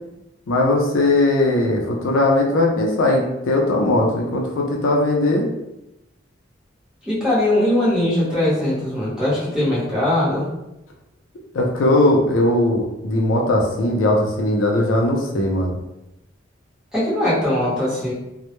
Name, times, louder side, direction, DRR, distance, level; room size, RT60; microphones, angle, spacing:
voice 1, 0.5-5.5 11.5-15.8, left 1 dB, 80° left, 0 dB, 0.5 m, -19 dB
voice 2, 7.0-10.5 16.9-18.1, left 1 dB, 5° right, -9 dB, 0.9 m, -20 dB
2.1 x 2.0 x 2.9 m, 0.91 s
head